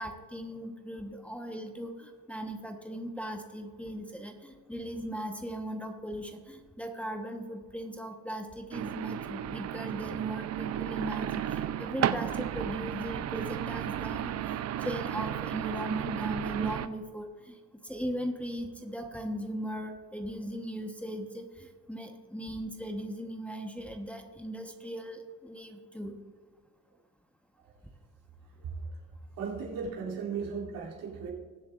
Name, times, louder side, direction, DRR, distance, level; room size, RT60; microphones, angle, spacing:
voice 1, 0.0-17.6 17.8-26.2, equal, 5° left, 3 dB, 1.1 m, -38 dB
sound 1, 8.7-16.9, right 10 dB, 50° right, 0.5 m, -33 dB
voice 2, 29.4-31.3, right 5 dB, 75° right, -4 dB, 2.9 m, -36 dB
21.0 x 7.5 x 2.5 m, 1.5 s
supercardioid pair, 70°, 34 cm